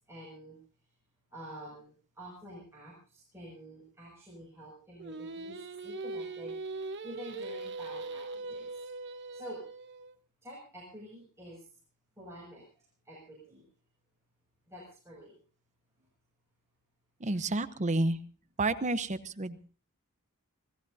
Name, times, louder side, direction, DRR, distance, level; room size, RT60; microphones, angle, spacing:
voice 1, 0.1-0.6 1.3-5.6 5.8-6.5 7.0-8.7 9.3-9.6 10.4-11.6 12.2-12.6 13.0-13.6 14.7-15.3, equal, 10° right, -5 dB, 6.5 m, -47 dB
Singing, 5.0-10.2, right 3 dB, 55° right, 1.1 m, -41 dB
voice 2, 17.2-18.2 18.6-19.6, right 2 dB, 35° right, 12 dB, 0.9 m, -30 dB
27.0 x 18.0 x 2.7 m, 0.37 s
head